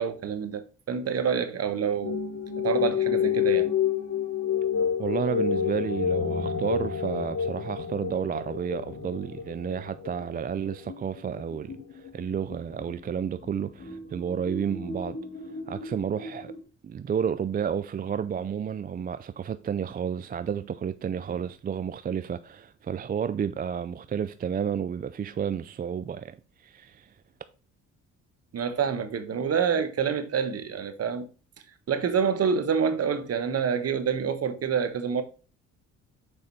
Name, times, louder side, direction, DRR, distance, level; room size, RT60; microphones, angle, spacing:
voice 1, 0.0-2.2 2.6-3.7 28.5-31.3 31.9-35.2, right 7 dB, 55° right, 1.2 m, -27 dB
sound 1, 2.0-16.6, left 8 dB, 50° left, 2.3 m, -30 dB
voice 2, 5.0-15.2 15.7-16.5 16.8-27.1, right 8 dB, 30° right, 0.4 m, -31 dB
6.6 x 5.0 x 4.2 m
cardioid pair, 90°, 30 cm